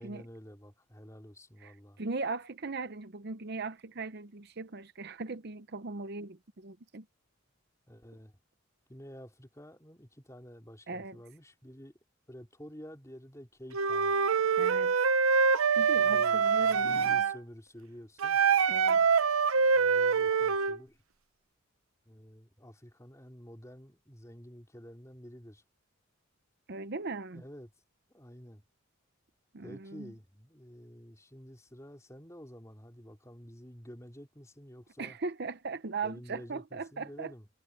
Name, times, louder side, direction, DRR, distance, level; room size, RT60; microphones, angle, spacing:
voice 1, 0.0-2.0 7.9-8.3 8.9-11.9 12.3-14.2 16.0-18.4 19.7-21.0 22.0-25.6 27.3-27.7 28.1-28.6 29.6-35.2 36.0-37.5, equal, 15° left, 3.9 m, -50 dB
voice 2, 1.6-7.0 10.9-11.2 14.6-14.9 15.7-17.2 18.7-19.0 26.7-27.4 29.5-30.1 35.0-37.3, right 4 dB, 50° right, 0.7 m, -39 dB
Wind instrument woodwind instrument, 13.7-17.4 18.2-20.8, right 5 dB, 80° right, 0.9 m, -25 dB
head